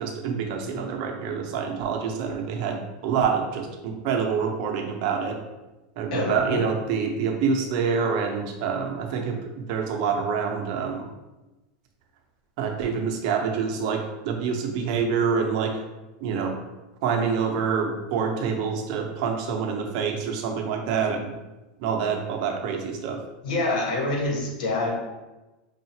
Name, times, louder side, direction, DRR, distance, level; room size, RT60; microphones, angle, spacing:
voice 1, 0.0-5.4 6.0-11.1 12.6-15.7 16.2-16.6 17.0-21.3 21.8-23.2, right 6 dB, 55° right, 2 dB, 0.7 m, -26 dB
voice 2, 6.1-6.6 23.4-25.0, left 2 dB, 75° left, -1 dB, 1.3 m, -26 dB
5.5 x 2.4 x 2.8 m, 1.1 s
supercardioid pair, 155°, 5 cm